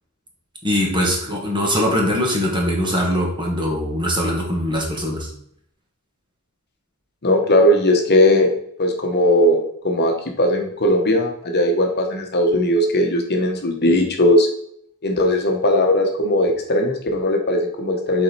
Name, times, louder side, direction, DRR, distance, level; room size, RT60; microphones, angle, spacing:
voice 1, 0.6-5.3, equal, 20° right, -1 dB, 1.7 m, -21 dB
voice 2, 7.2-8.5 8.8-14.5 15.0-18.2, left 1 dB, 50° left, 2 dB, 1.2 m, -18 dB
7.6 x 4.3 x 4.2 m, 0.69 s
head